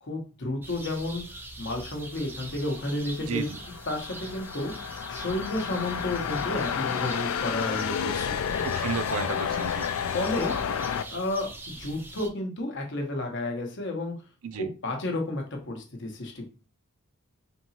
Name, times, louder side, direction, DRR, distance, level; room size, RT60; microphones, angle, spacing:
voice 1, 0.0-3.5 3.9-8.4 9.2-9.3 10.1-10.5 11.1-11.5 11.8-14.1 14.5-16.5, left 2 dB, 55° left, 2 dB, 1.0 m, -32 dB
sound 1, 0.6-12.3, right 2 dB, 10° right, 0.3 m, -43 dB
sound 2, 3.1-11.0, left 8 dB, 75° left, 0.3 m, -31 dB
voice 2, 3.2-3.6 8.6-9.9 14.4-14.7, right 5 dB, 75° right, 11 dB, 0.5 m, -33 dB
4.5 x 2.9 x 2.7 m, 0.34 s
head